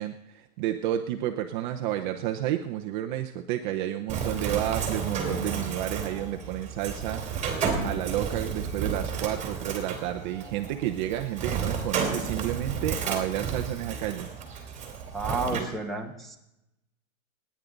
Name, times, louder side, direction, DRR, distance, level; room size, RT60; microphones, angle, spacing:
voice 1, 0.0-14.3 15.5-15.7, right 12 dB, 35° right, 5 dB, 0.8 m, -31 dB
Bird, 4.1-15.6, right 6 dB, 15° right, 3.2 m, -32 dB
voice 2, 15.1-16.4, right 3 dB, ahead, -2 dB, 1.5 m, -31 dB
28.0 x 10.5 x 4.0 m, 0.89 s
hypercardioid pair, 150°, 42 cm